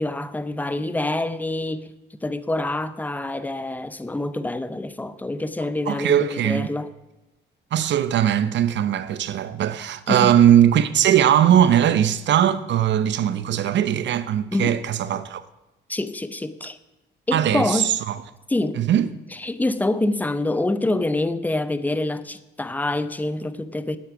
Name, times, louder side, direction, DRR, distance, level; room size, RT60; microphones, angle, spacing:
voice 1, 0.0-1.9 2.2-6.9 10.1-10.4 14.5-14.8 15.9-16.8 17.3-17.9 18.5-18.8 19.4-24.0, left 2 dB, 10° left, 0.6 m, -26 dB
voice 2, 5.9-6.7 7.7-15.4 17.3-18.2 18.8-19.1, right 10 dB, 65° right, 0.7 m, -19 dB
8.9 x 8.4 x 5.8 m
cardioid pair, 90°, 20 cm